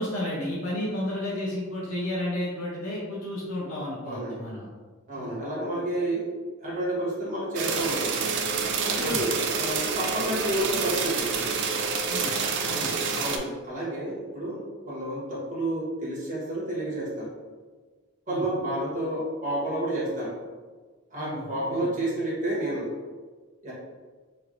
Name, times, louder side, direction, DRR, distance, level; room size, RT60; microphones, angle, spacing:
voice 1, 0.0-4.7 5.2-5.4 9.0-9.2 12.1-12.4 12.6-12.9 18.3-18.4 21.2-21.9, left 1 dB, 70° left, -6 dB, 0.7 m, -32 dB
voice 2, 4.0-4.5 5.1-6.3 6.6-8.1 8.9-11.3 13.1-17.3 18.3-20.4 21.1-22.9 23.6-23.7, right 1 dB, 35° right, -7 dB, 1.2 m, -30 dB
sound 1, 7.6-13.4, right 5 dB, 55° right, 0.3 m, -28 dB
3.0 x 3.0 x 2.5 m, 1.4 s
head